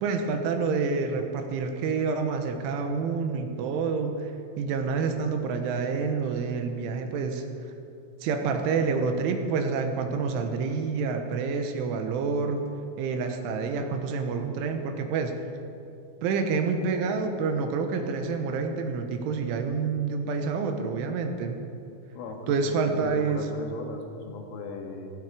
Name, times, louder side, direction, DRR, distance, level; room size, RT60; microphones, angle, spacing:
voice 1, 0.0-4.3 4.6-7.4 8.2-12.6 13.0-15.4 16.2-21.6 22.5-23.4, right 5 dB, 75° right, 5 dB, 3.4 m, -28 dB
voice 2, 22.1-25.1, left 3 dB, 90° left, 2 dB, 4.4 m, -38 dB
16.0 x 16.0 x 4.9 m, 2.6 s
omnidirectional pair, 5.8 m